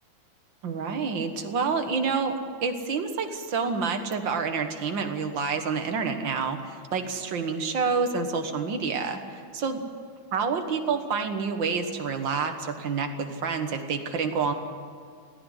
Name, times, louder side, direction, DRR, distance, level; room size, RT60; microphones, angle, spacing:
voice 1, 0.6-9.8 10.3-14.5, right 5 dB, 50° right, 6 dB, 1.6 m, -28 dB
18.0 x 15.0 x 9.9 m, 2.1 s
omnidirectional pair, 3.4 m